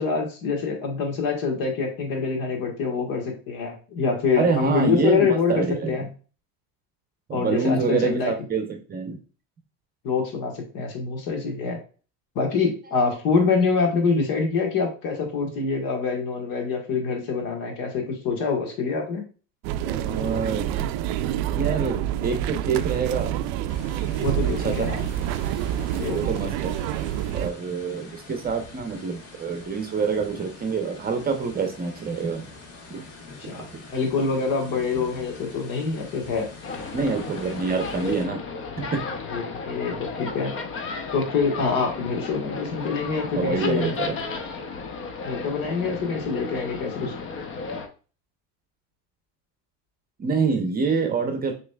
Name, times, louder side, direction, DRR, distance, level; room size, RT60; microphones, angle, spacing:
voice 1, 0.0-6.1 7.3-8.3 10.0-11.8 12.3-19.2 24.2-25.0 25.8-26.2 33.4-33.6 33.9-36.5 39.3-40.6 41.1-43.9 45.2-47.1, left 5 dB, 60° left, 2 dB, 1.6 m, -25 dB
voice 2, 4.4-5.9 7.3-9.2 19.9-20.8 21.6-23.3 24.6-24.9 26.1-26.7 27.3-32.4 32.9-33.0 33.4-33.6 36.9-38.4 38.8-39.0 43.3-44.2 47.0-47.1 50.2-51.5, right 5 dB, 25° right, 5 dB, 0.7 m, -26 dB
sound 1, 19.6-27.5, right 12 dB, 60° right, 0.5 m, -27 dB
sound 2, 23.7-38.3, left 3 dB, 80° left, 1.5 m, -44 dB
sound 3, 36.6-47.9, left 4 dB, 35° left, 0.7 m, -34 dB
5.9 x 3.2 x 2.3 m, 0.36 s
supercardioid pair, 115°, 38 cm